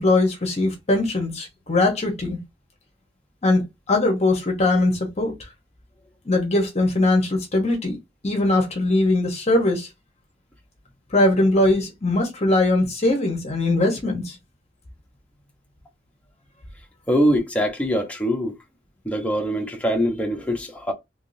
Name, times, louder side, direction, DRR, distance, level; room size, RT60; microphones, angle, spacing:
voice 1, 0.0-2.4 3.4-5.3 6.2-8.0 8.2-9.9 11.1-14.4, left 2 dB, 35° left, 1.1 m, -21 dB
voice 2, 17.1-18.5 19.0-20.9, equal, 10° left, 0.9 m, -23 dB
3.6 x 3.1 x 2.7 m
head